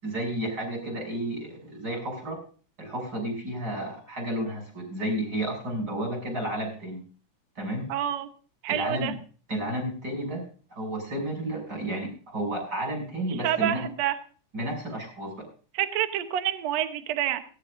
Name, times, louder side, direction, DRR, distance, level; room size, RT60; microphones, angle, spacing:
voice 1, 0.0-2.4 2.8-7.0 7.6-7.9 8.7-9.1 9.5-10.4 10.7-13.9 14.5-15.3, right 1 dB, 30° right, 1 dB, 7.8 m, -31 dB
voice 2, 7.9-8.3 8.6-9.1 13.4-14.1 15.7-17.4, right 11 dB, 65° right, 8 dB, 1.9 m, -27 dB
17.5 x 17.5 x 2.6 m, 0.40 s
omnidirectional pair, 3.7 m